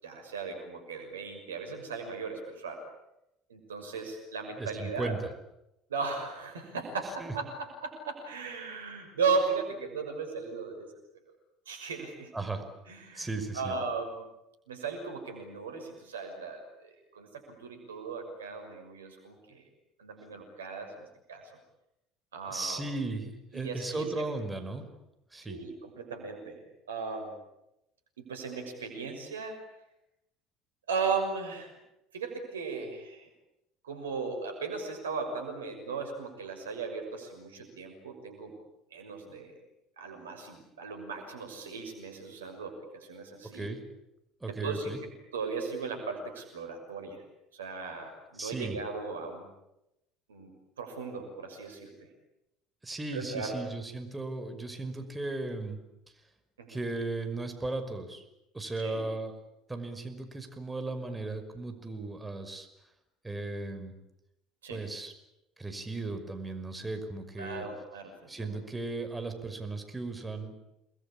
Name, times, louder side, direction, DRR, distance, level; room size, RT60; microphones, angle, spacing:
voice 1, 0.0-2.8 3.5-5.2 5.9-10.9 11.7-12.3 12.9-13.3 13.5-14.2 14.7-19.6 20.0-21.5 22.3-22.8 23.5-24.3 25.4-26.6 26.9-27.3 28.2-29.6 30.9-31.7 32.1-33.3 33.8-38.5 38.9-39.5 40.0-43.7 44.5-47.2 47.5-49.5 50.3-50.5 50.8-51.9 53.1-53.6 56.6-56.8 58.8-59.0 64.6-64.8 67.4-68.6, right 4 dB, 90° right, 5 dB, 6.3 m, -37 dB
voice 2, 4.6-5.2 7.2-7.3 12.3-12.6 13.1-13.7 22.5-24.8 25.3-25.6 43.5-43.8 44.4-45.0 48.4-48.8 52.8-55.8 56.7-58.2 58.5-59.3 59.7-62.7 63.2-63.9 64.7-65.1 65.6-67.7 68.3-70.5, right 2 dB, 15° right, 7 dB, 5.6 m, -36 dB
30.0 x 21.0 x 8.8 m, 0.88 s
hypercardioid pair, 70°, 0 cm